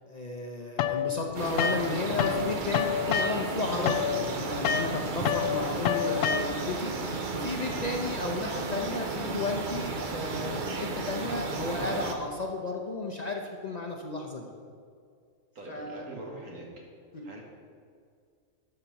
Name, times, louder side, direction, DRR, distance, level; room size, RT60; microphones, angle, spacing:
voice 1, 0.0-14.5 15.7-16.0 17.1-17.2, left 2 dB, 40° left, 0 dB, 0.7 m, -33 dB
sound 1, 0.8-2.4 2.7-6.8, left 9 dB, 75° left, 0.9 m, -28 dB
sound 2, 1.3-12.1, right 3 dB, 45° right, 0.8 m, -34 dB
voice 2, 15.6-16.7 17.2-17.4, right 1 dB, 75° right, -1 dB, 2.1 m, -42 dB
12.0 x 4.3 x 6.8 m, 2.2 s
omnidirectional pair, 1.4 m